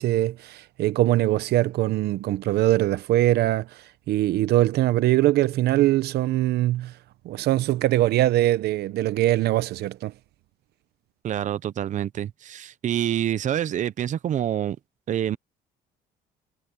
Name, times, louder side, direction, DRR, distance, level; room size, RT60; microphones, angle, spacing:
voice 1, 0.0-6.9 7.2-10.1, right 15 dB, 75° right, 0.9 m, -22 dB
voice 2, 11.2-14.8 15.1-15.4, right 10 dB, 45° right, 0.8 m, -27 dB
cardioid pair, 110°, 17 cm